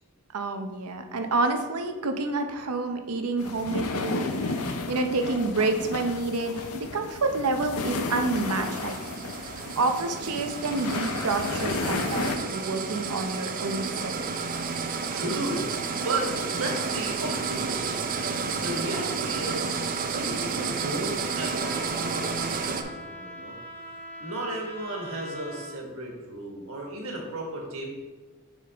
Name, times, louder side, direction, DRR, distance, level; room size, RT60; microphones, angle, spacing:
voice 1, 0.3-9.1 9.4-14.1 20.1-20.4, right 3 dB, 85° right, 6 dB, 0.7 m, -29 dB
sound 1, 3.4-12.4, left 3 dB, 75° left, 0.6 m, -32 dB
sound 2, 7.7-22.8, right 5 dB, 40° right, 0.5 m, -31 dB
voice 2, 15.1-23.5 24.2-27.9, right 1 dB, 65° right, -1 dB, 1.6 m, -34 dB
Trumpet, 21.6-25.8, left 1 dB, 10° left, 0.5 m, -41 dB
6.4 x 5.3 x 3.4 m, 1.3 s
head